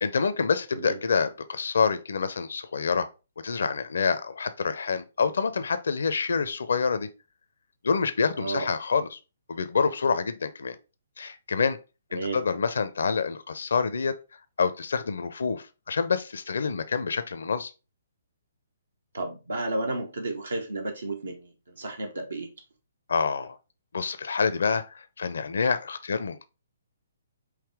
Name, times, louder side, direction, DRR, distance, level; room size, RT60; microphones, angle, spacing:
voice 1, 0.0-3.1 3.4-7.1 7.8-9.2 9.5-10.8 11.2-11.8 12.1-14.1 14.6-17.7 23.1-23.6 23.9-24.8 25.2-26.5, left 5 dB, 65° left, 0.5 m, -27 dB
voice 2, 8.4-8.7 12.1-12.4 19.1-21.5 21.8-22.5, right 2 dB, 75° right, 0.8 m, -32 dB
5.0 x 2.9 x 3.4 m
figure-of-eight pair, 130°, 0 cm